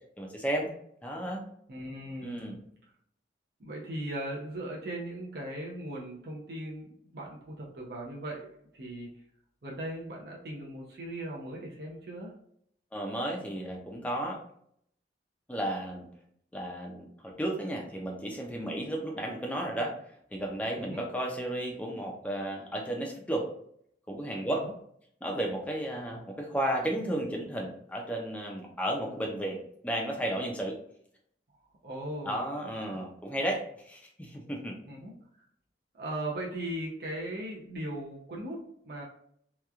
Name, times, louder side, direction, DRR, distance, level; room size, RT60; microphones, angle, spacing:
voice 1, 0.2-0.7 1.0-1.4 2.2-2.6 12.9-14.4 15.5-16.1 16.5-19.9 20.3-23.5 24.1-24.6 25.2-29.6 29.8-30.8 32.2-33.6 33.8-34.8, right 1 dB, 10° left, 0 dB, 0.4 m, -33 dB
voice 2, 1.7-2.5 3.6-9.1 9.6-12.3 20.8-21.0 24.5-24.7 26.1-26.2 31.8-32.4 34.9-35.4 35.9-39.0, right 1 dB, 60° right, -2 dB, 0.6 m, -38 dB
2.9 x 2.3 x 2.3 m, 0.68 s
head